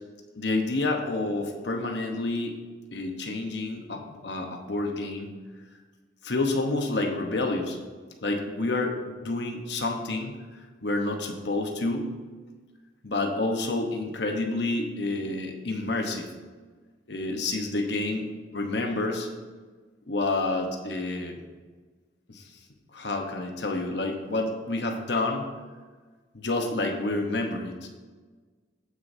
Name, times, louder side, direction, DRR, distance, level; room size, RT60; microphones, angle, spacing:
voice 1, 0.4-2.6 2.9-5.3 6.2-7.8 8.2-10.3 10.8-12.1 13.0-16.3 17.1-18.3 18.5-19.3 20.1-21.4 22.3-22.4 22.9-25.5 26.3-27.9, left 2 dB, 65° left, 3 dB, 1.1 m, -29 dB
16.0 x 6.5 x 2.8 m, 1.4 s
head